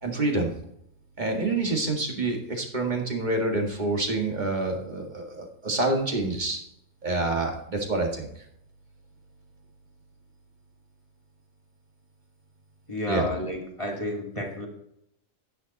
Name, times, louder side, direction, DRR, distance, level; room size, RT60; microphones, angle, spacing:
voice 1, 0.0-0.5 1.2-6.6 7.0-8.3 13.1-13.3, right 2 dB, 35° right, 1 dB, 2.0 m, -27 dB
voice 2, 12.9-14.7, left 1 dB, 25° left, -1 dB, 2.0 m, -31 dB
10.0 x 9.4 x 4.1 m, 0.76 s
omnidirectional pair, 1.4 m